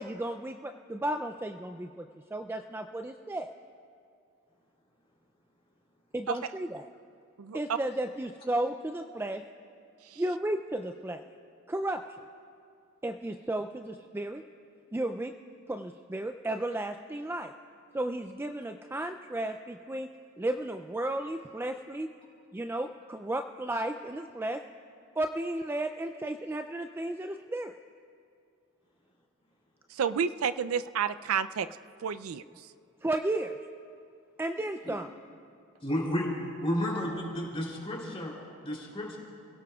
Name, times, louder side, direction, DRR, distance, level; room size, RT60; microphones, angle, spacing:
voice 1, 0.0-3.5 6.1-6.9 7.5-9.4 10.2-11.2 11.7-12.0 13.0-14.4 14.9-15.3 15.7-17.5 17.9-20.1 20.4-22.1 22.5-24.6 25.2-27.8 33.0-33.6 34.4-35.1, right 1 dB, 10° right, 6 dB, 0.3 m, -33 dB
voice 2, 29.9-31.7 32.0-32.4, right 7 dB, 90° right, 12 dB, 0.4 m, -30 dB
voice 3, 35.8-39.2, equal, 30° left, -2 dB, 3.1 m, -32 dB
30.0 x 17.0 x 2.3 m, 2.4 s
head